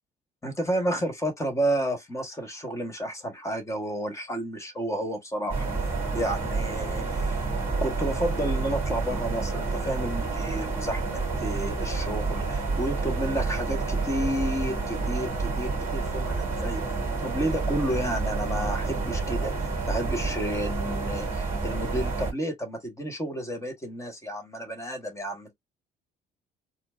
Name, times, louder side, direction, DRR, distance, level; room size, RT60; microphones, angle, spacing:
voice 1, 0.4-5.6 6.1-7.4 7.8-16.8 17.2-25.5, right 1 dB, 15° left, 1.4 m, -31 dB
sound 1, 5.5-22.3, right 3 dB, 15° right, 2.3 m, -29 dB
4.3 x 2.1 x 2.6 m
cardioid pair, 110°, 17 cm